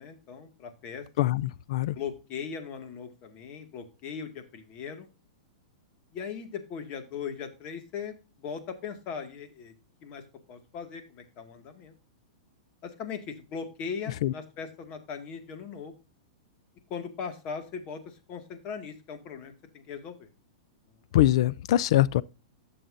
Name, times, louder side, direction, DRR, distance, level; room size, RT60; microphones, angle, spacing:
voice 1, 0.0-1.0 2.0-5.1 6.1-9.7 10.0-10.2 10.5-11.9 12.8-15.9 16.9-20.3, left 6 dB, 40° left, 1.9 m, -39 dB
voice 2, 1.2-2.0 14.2-14.3 21.1-22.2, left 14 dB, 65° left, 0.4 m, -23 dB
12.5 x 6.9 x 2.6 m
hypercardioid pair, 120°, 3 cm